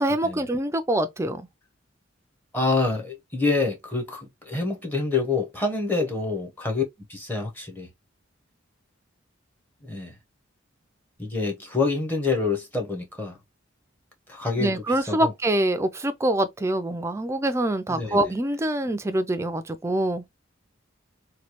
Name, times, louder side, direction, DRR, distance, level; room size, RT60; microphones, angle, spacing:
voice 1, 0.0-1.5 14.6-20.2, right 1 dB, 15° right, 0.4 m, -25 dB
voice 2, 2.5-6.8 7.1-7.9 9.9-10.1 11.2-13.3 14.3-14.7 15.1-15.3 17.9-18.2, left 3 dB, 10° left, 0.8 m, -26 dB
3.1 x 2.3 x 2.9 m
head